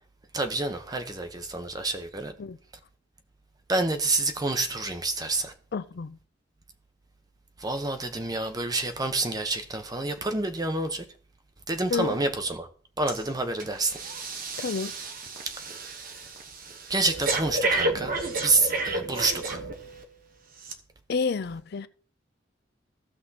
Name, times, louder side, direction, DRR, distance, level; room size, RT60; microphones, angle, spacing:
voice 1, 0.3-2.3 3.7-5.5 7.6-11.0 11.7-12.7 13.0-14.0 16.9-19.6, right 2 dB, 20° right, 0.9 m, -28 dB
voice 2, 5.7-6.2 11.9-12.2 14.6-14.9 21.1-21.9, left 5 dB, 55° left, 0.4 m, -29 dB
Breathing, 13.1-13.3 13.6-20.0 20.6-20.7, right 2 dB, 50° right, 1.1 m, -31 dB
15.5 x 5.9 x 2.9 m
head